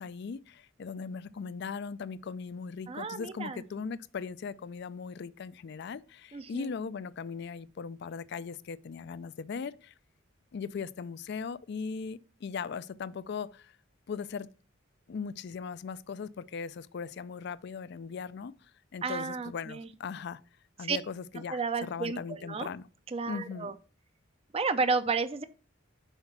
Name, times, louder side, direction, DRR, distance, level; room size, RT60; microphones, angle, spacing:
voice 1, 0.0-9.9 10.5-13.8 14.1-14.5 15.1-20.4 20.8-22.9 23.3-23.7, left 5 dB, 55° left, 0.4 m, -39 dB
voice 2, 2.9-3.6 6.3-6.7 19.0-19.9 20.8-21.0 21.5-22.7 23.1-23.7 24.5-25.4, right 4 dB, 30° right, 0.4 m, -32 dB
5.7 x 4.3 x 5.8 m
head